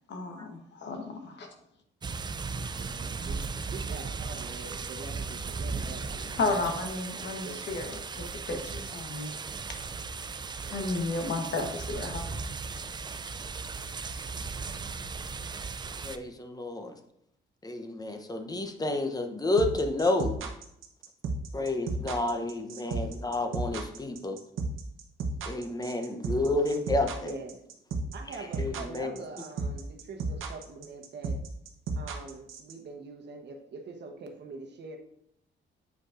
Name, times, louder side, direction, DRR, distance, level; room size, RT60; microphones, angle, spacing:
voice 1, 0.1-1.5 6.4-9.3 10.7-12.2, left 3 dB, 65° left, 4 dB, 1.1 m, -33 dB
sound 1, 2.0-16.2, right 4 dB, 25° right, 0.3 m, -37 dB
voice 2, 2.7-6.4 7.4-7.7 10.6-10.9 27.2-27.6 28.1-31.4 32.0-35.0, right 3 dB, 60° right, 3 dB, 1.0 m, -44 dB
voice 3, 16.0-16.9 17.6-20.4 21.5-24.4 25.5-27.3 28.6-29.1, left 2 dB, 20° left, 6 dB, 0.7 m, -30 dB
sound 2, 19.6-32.7, right 3 dB, 85° right, 0.8 m, -33 dB
8.1 x 5.2 x 2.5 m, 0.76 s
cardioid pair, 105°, 20 cm